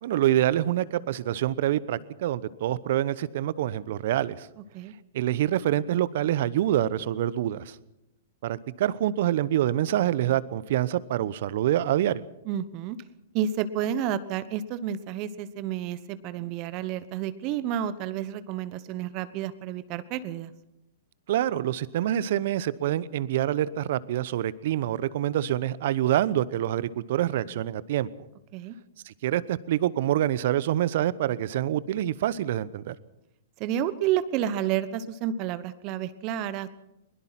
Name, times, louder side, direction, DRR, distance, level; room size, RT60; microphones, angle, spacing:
voice 1, 0.0-4.5 5.1-7.8 8.4-12.2 21.3-28.1 29.0-33.0, right 12 dB, 60° right, 19 dB, 0.9 m, -26 dB
voice 2, 12.4-13.0 13.3-20.5 28.5-28.7 33.6-36.7, right 10 dB, 40° right, 14 dB, 1.1 m, -30 dB
22.0 x 21.5 x 5.9 m, 0.86 s
hypercardioid pair, 110°, 0 cm